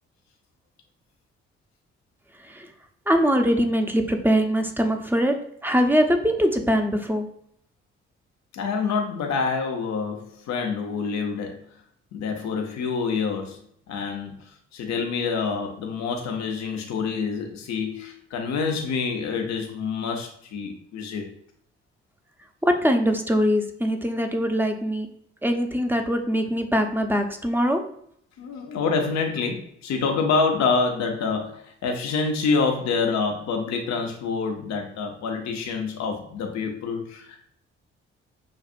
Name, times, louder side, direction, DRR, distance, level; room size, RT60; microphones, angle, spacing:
voice 1, 3.1-5.4 5.6-7.3 22.6-25.1 25.4-27.8, equal, 5° right, 4 dB, 0.8 m, -22 dB
voice 2, 8.5-11.6 12.1-13.6 13.9-14.3 14.7-21.2 28.4-37.5, left 5 dB, 65° left, 2 dB, 0.8 m, -27 dB
6.2 x 2.5 x 2.5 m, 0.67 s
hypercardioid pair, 45°, 30 cm